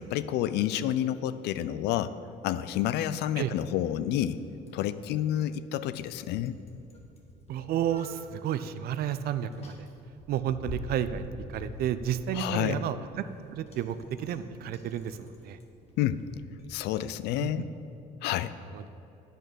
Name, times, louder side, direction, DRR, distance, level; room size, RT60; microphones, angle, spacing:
voice 1, 0.0-2.2 2.4-4.4 4.7-6.6 12.3-12.8 16.0-16.2 16.7-17.7 18.2-18.6, left 12 dB, 80° left, 14 dB, 0.4 m, -29 dB
Bicycle, 2.2-17.4, left 1 dB, 40° left, 1.3 m, -48 dB
voice 2, 7.5-9.7 10.3-13.2 13.5-15.2 15.4-15.6 17.4-17.5 18.7-18.9, right 10 dB, 65° right, 12 dB, 0.5 m, -31 dB
8.7 x 5.2 x 6.1 m, 2.9 s
cardioid pair, 110°, 17 cm